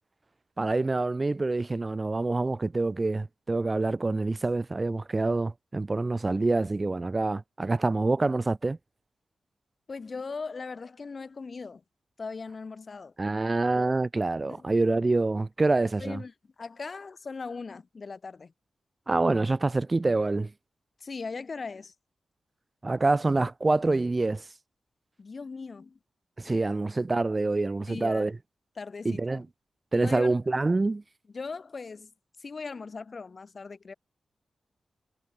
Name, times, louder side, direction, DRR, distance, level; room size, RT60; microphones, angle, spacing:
voice 1, 0.6-8.8 13.2-16.2 19.1-20.5 22.8-24.4 26.4-28.3 29.1-29.4 29.9-31.0, right 3 dB, 35° right, 1.7 m, -26 dB
voice 2, 9.9-11.8 12.2-13.1 13.8-13.9 14.5-14.7 16.0-18.5 21.0-21.9 25.2-26.0 27.9-28.3 28.8-29.4 29.9-30.3 31.3-32.1 32.4-33.9, left 4 dB, 55° left, 5.6 m, -39 dB
cardioid pair, 45°, 0 cm